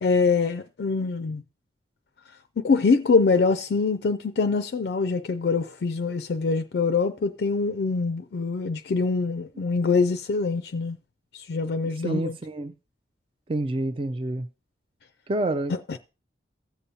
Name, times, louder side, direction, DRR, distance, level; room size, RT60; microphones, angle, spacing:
voice 1, 0.0-1.4 2.6-11.0 11.3-12.4 15.9-16.0, left 4 dB, 65° left, 0.4 m, -24 dB
voice 2, 12.0-12.7 13.5-14.5 15.3-15.7, right 1 dB, 30° right, 0.4 m, -27 dB
16.0 x 6.9 x 2.8 m
head